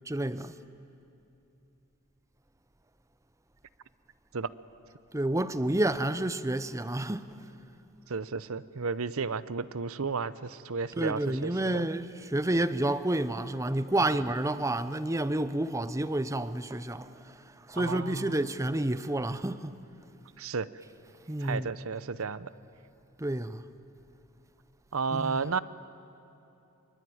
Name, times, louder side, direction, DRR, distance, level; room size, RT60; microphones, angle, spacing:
voice 1, 0.1-0.5 5.1-7.3 11.0-17.1 17.7-19.7 21.3-21.7 23.2-23.6 25.1-25.4, right 1 dB, 15° right, 0.7 m, -29 dB
voice 2, 8.1-11.9 14.0-14.1 17.8-18.4 20.4-20.7 21.4-22.5 24.9-25.6, right 5 dB, 70° right, 0.7 m, -33 dB
24.5 x 23.5 x 9.4 m
head